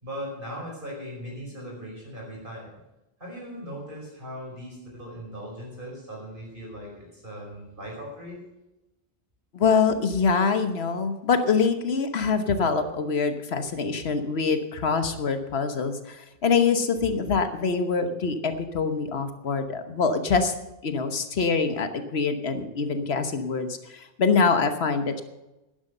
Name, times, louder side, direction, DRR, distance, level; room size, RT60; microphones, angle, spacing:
voice 1, 0.0-2.8 3.2-8.4, equal, 55° right, -2 dB, 5.5 m, -39 dB
voice 2, 9.5-20.5 20.8-25.2, left 5 dB, 80° left, 8 dB, 1.4 m, -24 dB
11.0 x 10.5 x 6.7 m, 0.96 s
omnidirectional pair, 1.0 m